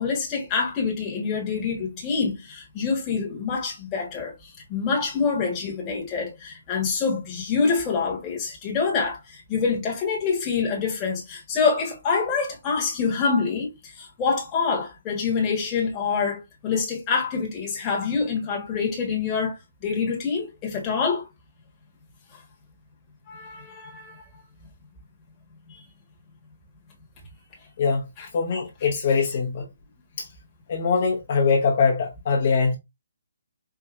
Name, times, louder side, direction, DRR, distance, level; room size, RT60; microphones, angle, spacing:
voice 1, 0.0-4.3 4.7-19.5 19.8-21.3 23.3-24.1 25.7-25.8 28.2-28.3, left 5 dB, 20° left, 1.3 m, -26 dB
voice 2, 28.3-29.7 30.2-30.3 30.7-32.8, left 5 dB, 45° left, 1.0 m, -22 dB
4.6 x 2.7 x 2.4 m
hypercardioid pair, 160°, 0 cm